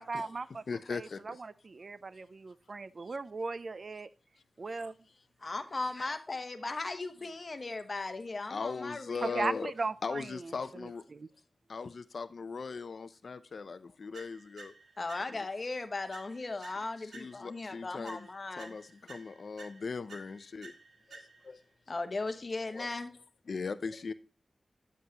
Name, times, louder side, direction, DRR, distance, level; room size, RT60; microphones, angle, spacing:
voice 1, 0.0-4.1 4.6-4.9 9.2-11.3, right 3 dB, 50° right, 0.4 m, -38 dB
voice 2, 0.7-1.4 8.5-9.7 10.0-11.0 11.7-14.7 15.3-15.5 16.6-18.3 18.6-20.7 21.1-21.6 22.7-23.0 23.5-24.1, left 5 dB, 65° left, 0.5 m, -39 dB
voice 3, 5.4-9.4 15.0-18.8 21.9-23.1, left 3 dB, 40° left, 1.1 m, -37 dB
sound 1, 14.1-15.6 16.1-17.7 18.0-21.6, right 3 dB, 85° right, 1.4 m, -53 dB
9.3 x 7.3 x 2.8 m
wide cardioid pair, 90°, 0 cm